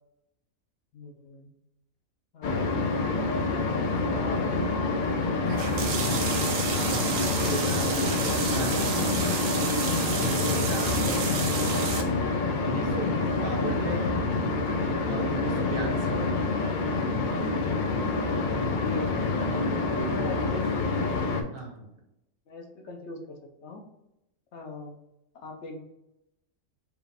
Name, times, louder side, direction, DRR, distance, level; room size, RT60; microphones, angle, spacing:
voice 1, 0.9-1.5 2.3-3.2 4.1-6.0 18.4-21.0 22.5-23.9 24.5-25.0 25.3-25.8, left 2 dB, 60° left, 2 dB, 0.9 m, -42 dB
sound 1, 2.4-21.4, left 3 dB, 80° left, 0.4 m, -27 dB
sound 2, 5.5-12.0, right 5 dB, 70° right, 1.0 m, -31 dB
voice 2, 6.6-9.3 10.1-11.4 12.6-14.2 15.1-16.3 21.5-21.9, right 2 dB, 45° right, 1 dB, 0.9 m, -35 dB
4.8 x 2.5 x 3.2 m, 0.86 s
omnidirectional pair, 1.5 m